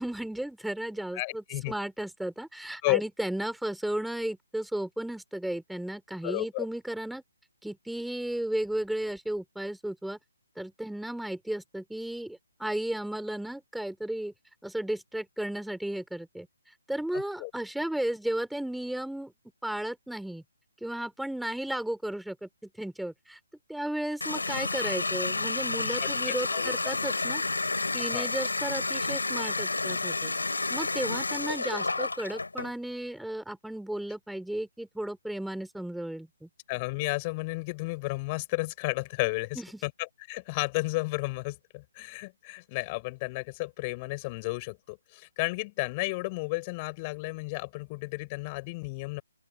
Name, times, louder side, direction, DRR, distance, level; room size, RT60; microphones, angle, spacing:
voice 1, 0.0-7.2 7.6-10.2 10.6-14.3 14.6-16.5 16.9-19.3 19.6-20.4 20.8-22.5 22.8-23.4 23.7-27.4 27.9-30.3 30.7-36.5 39.6-39.8, right 1 dB, ahead, 4.4 m, -34 dB
voice 2, 1.1-1.7 2.8-3.0 6.2-6.7 17.1-17.5 26.3-26.9 28.1-28.3 36.7-39.9 40.3-49.2, left 25 dB, 25° left, 7.3 m, -32 dB
Water tap faucet, 24.2-32.7, left 3 dB, 90° left, 6.0 m, -30 dB
open air
hypercardioid pair, 150°, 0 cm